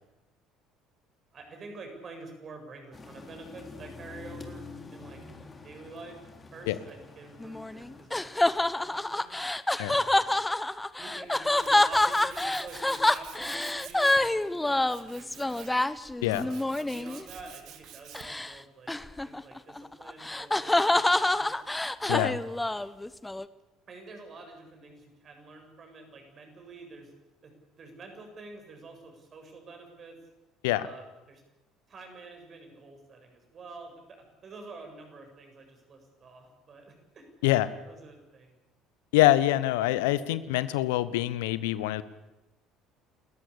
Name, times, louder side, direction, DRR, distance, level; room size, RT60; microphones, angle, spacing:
voice 1, 1.3-4.6 4.9-5.2 5.6-6.2 6.5-9.3 9.9-10.4 11.0-15.8 16.3-16.5 16.8-18.9 19.2-21.5 22.2-22.7 23.9-27.1 27.4-27.5 27.8-30.2 30.7-31.4 31.9-34.2 34.4-37.3 37.9-38.5, right 3 dB, 40° right, 4 dB, 7.7 m, -48 dB
sound 1, 2.9-8.1, left 4 dB, 25° left, 3.8 m, -46 dB
sound 2, 7.4-17.2 18.1-18.5 18.9-23.4, left 2 dB, 10° left, 1.1 m, -27 dB
Tools, 11.0-18.5, right 10 dB, 60° right, 2.3 m, -50 dB
voice 2, 39.1-42.0, left 15 dB, 75° left, 16 dB, 1.0 m, -25 dB
29.5 x 14.0 x 8.7 m, 1.0 s
hypercardioid pair, 60°, 0 cm